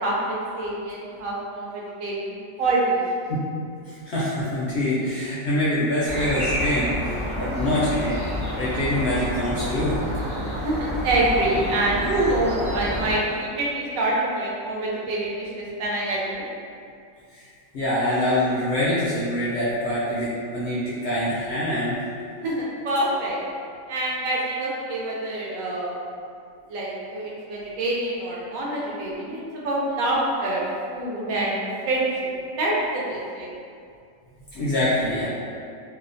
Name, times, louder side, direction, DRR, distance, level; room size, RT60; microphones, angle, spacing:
voice 1, 0.0-3.0 10.6-16.4 22.4-23.4 23.9-25.9 26.7-30.6 30.9-33.5, right 2 dB, 75° right, -5 dB, 0.9 m, -26 dB
voice 2, 3.9-10.0 17.3-17.5 17.7-22.1 34.5-35.3, left 1 dB, 65° left, -9 dB, 0.7 m, -25 dB
sound 1, 6.1-13.1, equal, 30° right, 0.4 m, -29 dB
2.7 x 2.0 x 2.5 m, 2.4 s
omnidirectional pair, 1.5 m